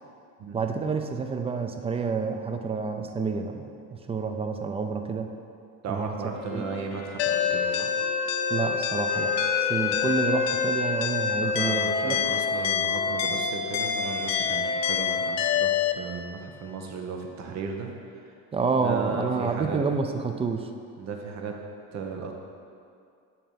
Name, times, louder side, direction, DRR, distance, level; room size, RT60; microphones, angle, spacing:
voice 1, 0.5-5.3 5.9-6.1 6.5-6.6 8.5-12.2 18.5-20.7, right 4 dB, 20° right, 6 dB, 0.4 m, -29 dB
voice 2, 5.8-7.9 11.4-17.9 18.2-18.3 18.8-19.8 21.0-21.6 21.9-22.3, right 5 dB, 55° right, 2 dB, 0.9 m, -35 dB
Wind instrument woodwind instrument, 6.3-11.0 11.7-15.6, left 3 dB, 45° left, 1.0 m, -41 dB
sound 1, 7.2-15.9, left 7 dB, 85° left, 0.5 m, -26 dB
7.2 x 2.9 x 5.5 m, 2.4 s
supercardioid pair, 95°, 34 cm